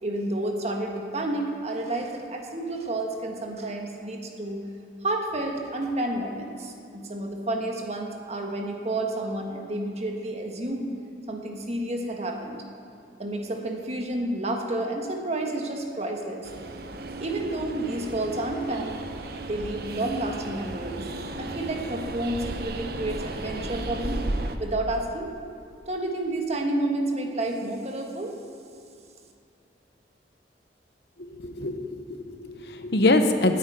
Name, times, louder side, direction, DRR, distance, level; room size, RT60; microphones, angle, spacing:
voice 1, 0.0-4.6 5.0-10.9 11.3-12.6 13.2-16.5 17.2-19.0 19.5-21.0 21.4-24.2 24.6-25.3 25.9-28.4, right 1 dB, 40° right, 2 dB, 1.4 m, -30 dB
Train, 16.4-24.6, right 2 dB, 60° right, 0.8 m, -34 dB
voice 2, 31.2-33.6, left 2 dB, 65° left, 7 dB, 0.9 m, -24 dB
9.6 x 8.9 x 9.3 m, 2.5 s
head